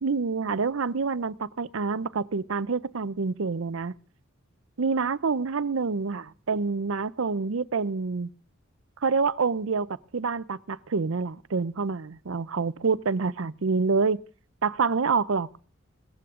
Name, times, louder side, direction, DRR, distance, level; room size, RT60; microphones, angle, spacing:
voice 1, 0.0-3.9 4.8-8.3 9.0-14.2 14.6-15.6, right 4 dB, 75° right, 17 dB, 0.6 m, -27 dB
17.5 x 14.5 x 3.8 m, 0.41 s
head